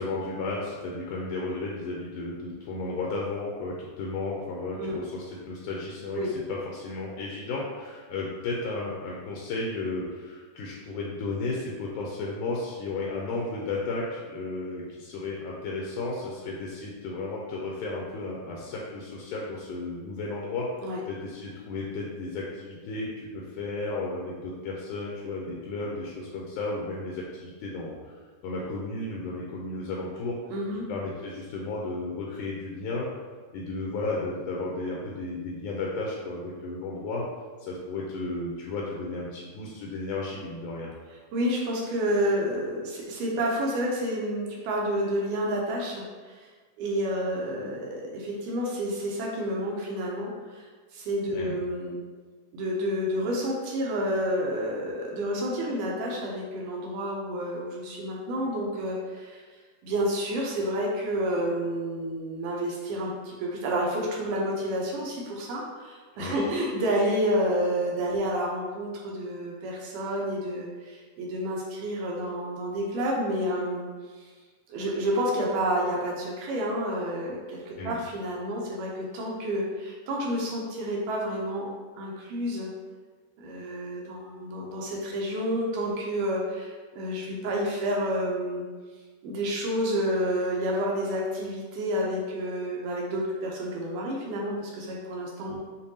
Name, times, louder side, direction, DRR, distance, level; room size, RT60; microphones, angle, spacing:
voice 1, 0.0-20.7 21.1-27.9 28.4-30.4 30.9-33.1 33.5-37.2 37.6-40.9 51.3-51.6 66.2-66.5 77.8-78.0, left 3 dB, 80° left, -3 dB, 1.9 m, -33 dB
voice 2, 30.5-30.9 41.3-46.5 46.8-50.7 50.9-52.0 52.5-59.4 59.8-73.9 74.2-74.3 74.7-81.7 82.0-82.7 83.4-88.6 89.2-95.6, equal, 80° right, -2 dB, 2.1 m, -29 dB
6.7 x 2.5 x 2.7 m, 1.4 s
omnidirectional pair, 3.8 m